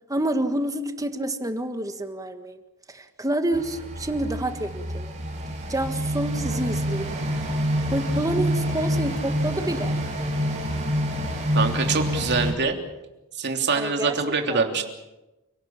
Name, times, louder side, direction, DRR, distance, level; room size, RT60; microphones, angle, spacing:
voice 1, 0.1-2.6 2.9-5.1 5.7-7.5 7.9-9.9 13.7-14.2 14.5-14.7, right 1 dB, 15° right, 7 dB, 1.6 m, -28 dB
sound 1, 3.5-12.5, equal, 35° right, 5.6 m, -27 dB
voice 2, 11.5-12.8 13.4-14.8, right 4 dB, 50° right, 4 dB, 3.2 m, -24 dB
29.5 x 17.5 x 7.4 m, 1.0 s
head